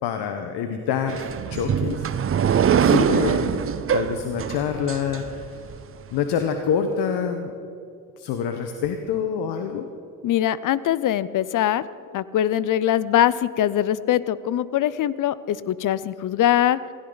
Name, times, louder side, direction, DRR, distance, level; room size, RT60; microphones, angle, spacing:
voice 1, 0.0-2.1 2.8-3.6 3.9-5.6 6.1-7.5 8.2-9.9, left 7 dB, 65° left, 6 dB, 1.2 m, -26 dB
sound 1, 1.1-5.8, right 8 dB, 30° right, 0.7 m, -23 dB
voice 2, 10.2-11.8 12.1-16.8, left 11 dB, 50° left, 18 dB, 0.6 m, -22 dB
16.5 x 16.5 x 4.0 m, 2.5 s
supercardioid pair, 75°, 42 cm